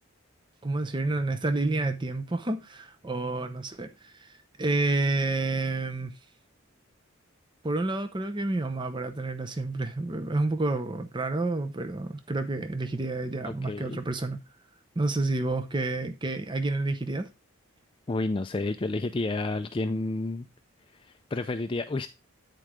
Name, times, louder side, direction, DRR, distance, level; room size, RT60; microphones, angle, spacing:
voice 1, 0.6-6.1 7.6-14.4 15.0-17.3, right 2 dB, 20° right, 0.6 m, -29 dB
voice 2, 13.4-14.0 18.1-20.5 21.0-22.1, left 2 dB, 25° left, 0.4 m, -30 dB
9.2 x 4.6 x 4.9 m
head